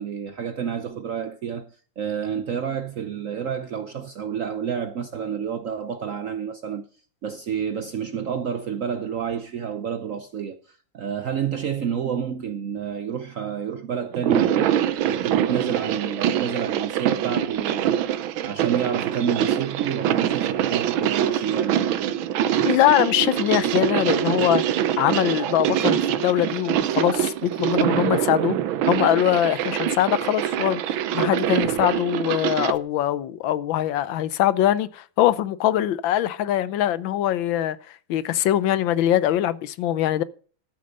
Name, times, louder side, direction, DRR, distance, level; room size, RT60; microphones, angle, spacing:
voice 1, 0.0-6.9 7.2-14.8 15.0-18.0 18.4-22.2, right 7 dB, 65° right, 0.8 m, -29 dB
sound 1, 14.1-32.8, right 10 dB, 90° right, 1.6 m, -24 dB
voice 2, 22.6-28.6 28.9-37.8 38.1-40.2, left 12 dB, 80° left, 1.4 m, -22 dB
13.0 x 6.8 x 5.2 m
omnidirectional pair, 2.1 m